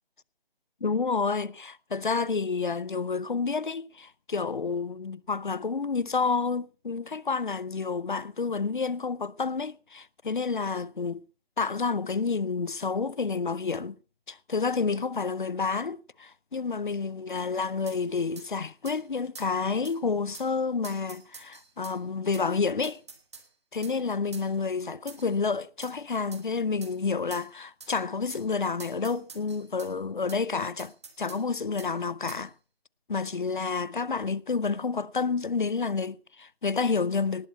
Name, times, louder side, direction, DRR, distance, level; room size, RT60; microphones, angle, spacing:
voice 1, 0.8-11.2 11.6-14.0 14.3-23.0 23.7-30.9 31.2-32.5 33.1-37.5, left 4 dB, 55° left, 0.6 m, -29 dB
sound 1, 17.9-18.0 18.4-18.5 18.9-19.0 19.4-19.5 19.8-20.0 20.3-20.5 20.8-22.0 22.3-22.5 22.8-23.5 23.8-24.0 24.3-24.5 25.1-25.3 25.8-26.0 26.3-26.4 26.8-26.9 27.3-27.5 27.8-27.9 28.3-28.5 28.8-29.9 30.3-30.4 30.8-31.4 31.8-31.9 32.3-32.4, right 5 dB, 25° right, 1.8 m, -46 dB
19.0 x 8.8 x 5.4 m
figure-of-eight pair, 165°, 31 cm